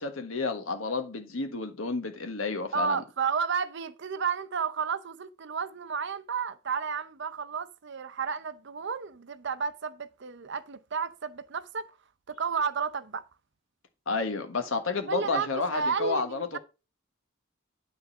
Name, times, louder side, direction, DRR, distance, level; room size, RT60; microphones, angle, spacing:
voice 1, 0.0-3.0 14.1-16.6, left 4 dB, 75° left, 1.5 m, -31 dB
voice 2, 2.7-11.9 12.3-13.2 15.1-16.6, right 6 dB, 60° right, 0.7 m, -32 dB
9.6 x 4.0 x 6.1 m
head